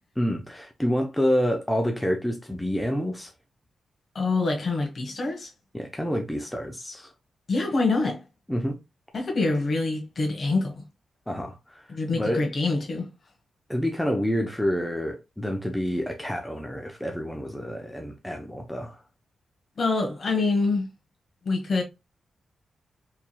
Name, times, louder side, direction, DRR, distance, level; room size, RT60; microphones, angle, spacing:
voice 1, 0.2-3.3 5.7-7.1 8.5-8.8 11.3-12.5 13.7-19.0, equal, 5° left, 0.6 m, -28 dB
voice 2, 4.1-5.5 7.5-8.2 9.1-10.8 11.9-13.1 19.8-20.9 21.4-21.8, left 3 dB, 45° left, 1.4 m, -25 dB
4.5 x 3.6 x 2.2 m
wide cardioid pair, 135°, 0 cm